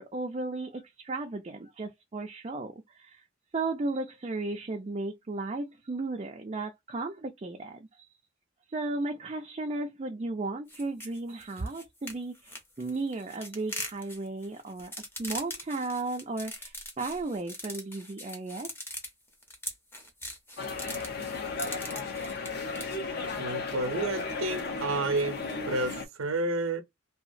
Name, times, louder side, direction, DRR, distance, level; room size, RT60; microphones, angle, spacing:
voice 1, 0.0-3.2 3.5-8.1 8.7-14.9 15.2-18.7, right 2 dB, 30° right, 0.4 m, -35 dB
sound 1, 10.7-22.9, left 1 dB, 10° left, 0.6 m, -41 dB
sound 2, 20.6-26.0, left 4 dB, 50° left, 0.6 m, -35 dB
voice 2, 23.4-25.4 25.7-26.8, right 2 dB, 80° right, 0.6 m, -30 dB
2.8 x 2.3 x 2.5 m
head